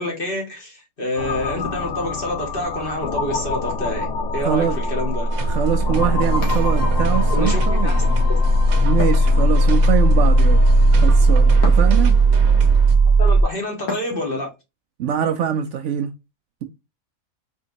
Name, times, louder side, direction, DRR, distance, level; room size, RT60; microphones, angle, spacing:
voice 1, 0.0-5.3 7.3-8.4 13.2-14.5, left 1 dB, 40° left, 1.7 m, -27 dB
sound 1, 1.2-13.4, right 1 dB, 65° left, 1.0 m, -17 dB
voice 2, 4.4-4.8 5.5-8.0 8.8-10.6 10.9-12.1 15.0-16.1, right 9 dB, 70° right, 0.8 m, -23 dB
sound 2, 5.3-13.0, right 5 dB, 90° right, 1.2 m, -30 dB
sound 3, 6.4-7.4 9.0-10.0 11.6-12.3 13.9-14.5, left 3 dB, 90° left, 1.8 m, -33 dB
4.4 x 3.6 x 2.6 m
omnidirectional pair, 1.4 m